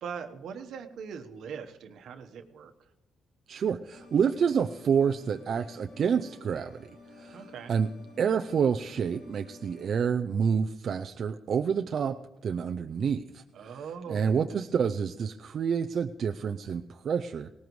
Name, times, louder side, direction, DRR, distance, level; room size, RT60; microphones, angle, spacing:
voice 1, 0.0-2.9 7.3-7.7 13.5-14.5, right 6 dB, 75° right, 7 dB, 1.1 m, -41 dB
voice 2, 3.5-6.7 7.2-7.4 7.7-7.9 8.2-12.2 12.4-13.4 14.1-17.5, right 7 dB, 55° right, 7 dB, 0.5 m, -28 dB
sound 1, 3.9-10.0, left 2 dB, 85° left, 2.2 m, -51 dB
19.0 x 18.5 x 3.2 m, 1.0 s
cardioid pair, 105°, 0 cm